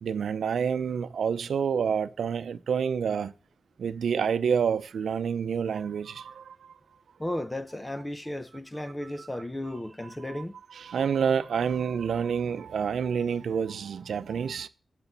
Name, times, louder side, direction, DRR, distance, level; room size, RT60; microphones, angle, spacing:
voice 1, 0.0-3.3 3.8-6.8 9.2-9.3 10.0-10.4 10.7-14.7, right 7 dB, 85° right, 0.6 m, -28 dB
voice 2, 7.2-10.6, left 1 dB, 10° left, 0.7 m, -34 dB
8.4 x 7.7 x 6.8 m
wide cardioid pair, 150°, 0 cm